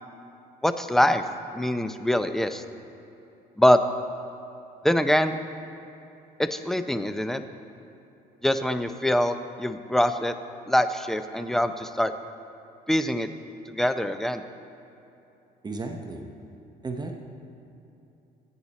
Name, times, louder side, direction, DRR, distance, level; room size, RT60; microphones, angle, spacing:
voice 1, 0.6-1.2 1.5-2.6 3.6-3.8 4.8-5.4 6.4-7.4 8.4-10.3 10.7-12.1 12.9-13.3 13.7-14.4, left 1 dB, ahead, 9 dB, 0.5 m, -24 dB
voice 2, 15.6-16.3 16.8-17.2, right 3 dB, 25° right, 3 dB, 0.8 m, -34 dB
14.5 x 8.7 x 4.1 m, 2.9 s
cardioid pair, 110°, 17 cm